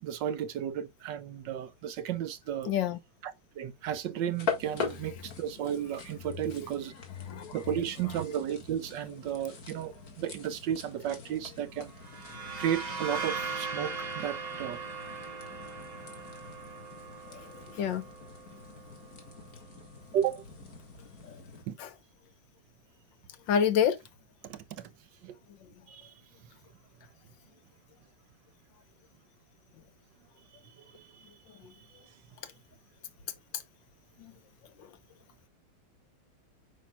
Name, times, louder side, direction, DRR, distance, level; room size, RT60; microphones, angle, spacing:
voice 1, 0.0-2.7 3.2-6.9 7.5-11.9 12.6-14.8 20.1-20.4 21.7-21.8 24.4-24.9 25.2-25.3 25.9-26.1 30.8-31.2, right 10 dB, 70° right, 1.2 m, -34 dB
voice 2, 2.6-3.0 7.3-7.6 17.3-17.5 17.7-18.0 21.2-21.3 21.8-21.9 23.5-24.0 34.2-34.3 34.8-34.9, left 8 dB, 70° left, 1.6 m, -28 dB
sound 1, 4.3-21.6, left 5 dB, 50° left, 2.1 m, -43 dB
sound 2, 11.9-19.5, right 4 dB, 35° right, 0.6 m, -39 dB
8.4 x 5.7 x 2.3 m
omnidirectional pair, 2.2 m